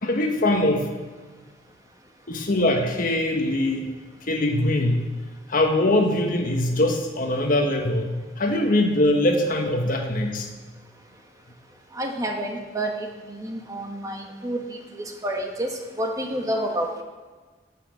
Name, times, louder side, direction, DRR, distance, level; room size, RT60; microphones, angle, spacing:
voice 1, 0.0-0.9 2.3-3.9 4.2-5.1 5.5-10.5, left 1 dB, 50° left, 3 dB, 1.4 m, -22 dB
voice 2, 12.0-12.9 13.3-16.9, right 1 dB, 20° right, 2 dB, 1.7 m, -29 dB
12.5 x 7.8 x 7.5 m, 1.3 s
head